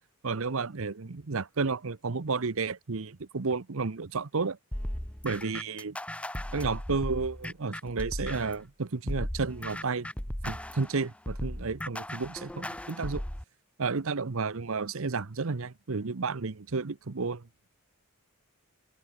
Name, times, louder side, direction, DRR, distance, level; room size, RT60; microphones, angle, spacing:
voice 1, 0.2-4.6 5.2-6.0 6.5-10.1 10.4-13.2 13.8-17.4, right 4 dB, 65° right, 0.8 m, -32 dB
sound 1, 4.7-8.6 9.1-13.4, left 1 dB, 5° left, 0.8 m, -36 dB
head